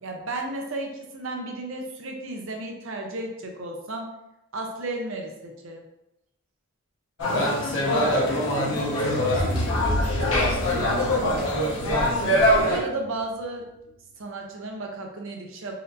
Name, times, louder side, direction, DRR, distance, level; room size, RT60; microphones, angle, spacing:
voice 1, 0.0-4.1 4.5-5.8 12.6-13.7 14.2-15.7, right 2 dB, 65° right, 2 dB, 0.6 m, -33 dB
sound 1, 7.2-12.8, left 1 dB, 80° left, 0.8 m, -24 dB
voice 2, 7.3-12.4, left 1 dB, 65° left, -4 dB, 1.1 m, -29 dB
sound 2, 8.1-13.2, equal, 35° right, 1.0 m, -31 dB
4.2 x 2.6 x 2.6 m, 0.88 s
head